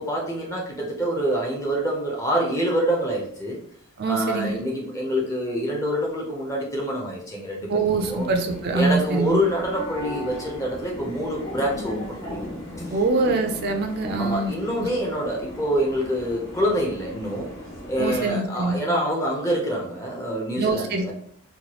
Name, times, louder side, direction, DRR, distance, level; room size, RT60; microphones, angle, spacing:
voice 1, 0.0-3.6 4.1-7.7 8.0-8.3 8.7-12.4 14.2-17.5 17.9-21.1, equal, 15° left, -2 dB, 0.5 m, -26 dB
voice 2, 4.0-4.6 7.7-9.4 12.9-14.5 14.8-14.9 18.0-18.8 20.6-21.1, right 3 dB, 45° right, 4 dB, 0.4 m, -24 dB
sound 1, 7.6-18.5, left 1 dB, 65° left, 1.3 m, -38 dB
3.0 x 2.2 x 2.8 m, 0.64 s
head